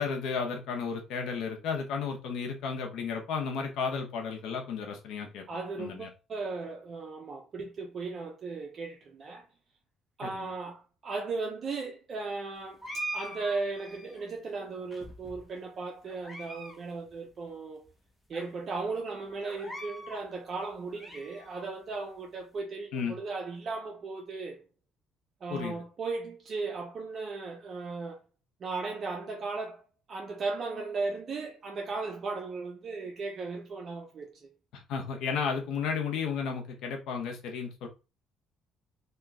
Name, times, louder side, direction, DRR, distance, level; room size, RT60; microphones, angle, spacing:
voice 1, 0.0-5.4 5.8-6.1 10.2-10.5 22.9-23.2 25.5-25.8 34.7-37.9, left 6 dB, 75° left, 0.7 m, -33 dB
voice 2, 5.5-9.5 10.2-17.8 18.3-24.6 25.4-28.2 28.6-34.5, right 3 dB, 40° right, 0.5 m, -36 dB
sound 1, 12.8-14.2 14.9-15.6 16.1-16.8 17.1-17.2 17.8-17.9 18.3-18.4 19.4-20.2 20.7-21.7, right 1 dB, 10° left, 0.8 m, -41 dB
3.0 x 2.2 x 3.5 m
cardioid pair, 125°, 0 cm